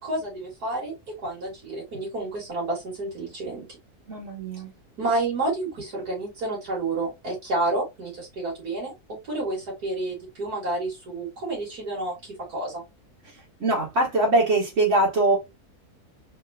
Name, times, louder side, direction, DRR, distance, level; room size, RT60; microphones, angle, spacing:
voice 1, 0.0-3.6 5.0-8.9 9.2-12.8, right 2 dB, 85° right, 2.5 m, -30 dB
voice 2, 4.1-4.7 13.6-15.4, right 2 dB, 55° right, 1.5 m, -22 dB
4.2 x 3.0 x 2.7 m
omnidirectional pair, 1.6 m